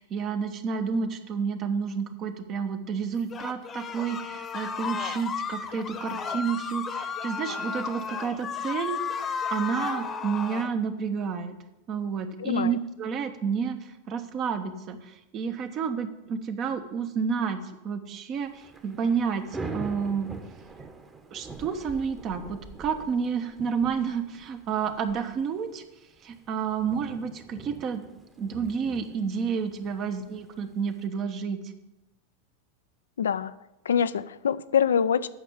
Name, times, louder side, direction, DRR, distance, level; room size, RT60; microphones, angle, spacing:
voice 1, 0.0-9.0 9.5-11.6 11.9-19.4 19.7-20.3 21.3-25.8 26.2-28.0 28.4-31.6, right 6 dB, 40° right, 8 dB, 1.1 m, -30 dB
sound 1, 3.3-10.7, left 6 dB, 25° left, 1.0 m, -33 dB
voice 2, 12.4-12.7 33.2-33.5 33.9-35.3, left 7 dB, 80° left, 14 dB, 0.4 m, -24 dB
Thunder / Rain, 18.4-31.1, right 3 dB, 20° right, 1.3 m, -44 dB
8.7 x 6.3 x 7.2 m, 0.95 s
hypercardioid pair, 95°, 0 cm